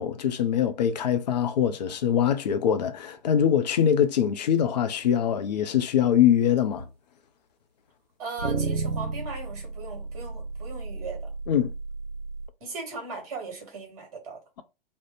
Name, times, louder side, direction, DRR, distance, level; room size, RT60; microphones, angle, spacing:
voice 1, 0.0-6.9 11.5-11.7, left 9 dB, 45° left, 0.4 m, -23 dB
sound 1, 6.8-6.9 8.4-12.5, right 4 dB, 85° right, 0.6 m, -33 dB
voice 2, 8.2-11.3 12.6-14.4, right 3 dB, 40° right, 1.2 m, -38 dB
2.5 x 2.0 x 3.1 m
figure-of-eight pair, 115°, 30 cm